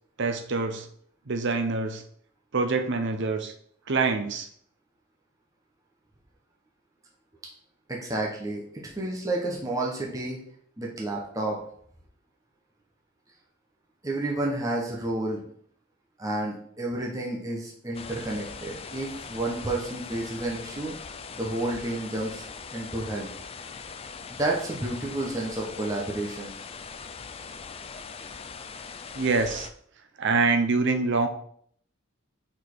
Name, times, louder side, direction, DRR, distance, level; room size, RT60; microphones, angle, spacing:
voice 1, 0.2-0.9 1.3-2.0 2.5-3.5 3.9-4.5 29.1-29.7 30.2-31.3, right 4 dB, 60° right, 7 dB, 0.7 m, -25 dB
voice 2, 7.9-10.4 10.8-11.6 14.0-15.4 16.2-20.9 21.3-22.4 22.7-23.3 24.3-26.5, right 2 dB, 15° right, -2 dB, 0.9 m, -30 dB
sound 1, 17.9-29.7, left 5 dB, 30° left, 0.4 m, -41 dB
5.2 x 4.2 x 4.6 m, 0.63 s
head